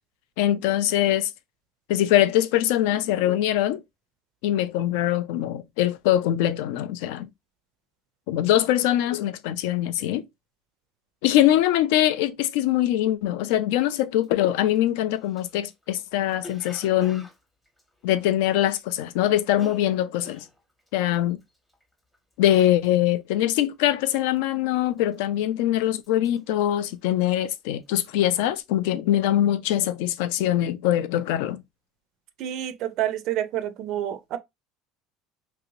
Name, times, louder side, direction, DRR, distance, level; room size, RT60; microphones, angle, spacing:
voice 1, 0.4-1.3 1.9-3.8 4.4-7.3 8.3-10.2 11.2-17.3 18.0-20.4 20.9-21.4 22.4-31.6, left 12 dB, 75° left, 0.4 m, -23 dB
Cough, 14.2-14.3 14.6-19.0 19.3-23.1 23.4-23.7 24.0-24.5 25.0-25.6 25.9-27.5 27.9-28.2, left 1 dB, 5° left, 0.7 m, -49 dB
voice 2, 32.4-34.4, right 12 dB, 45° right, 0.4 m, -28 dB
2.8 x 2.6 x 3.0 m
cardioid pair, 170°, 0 cm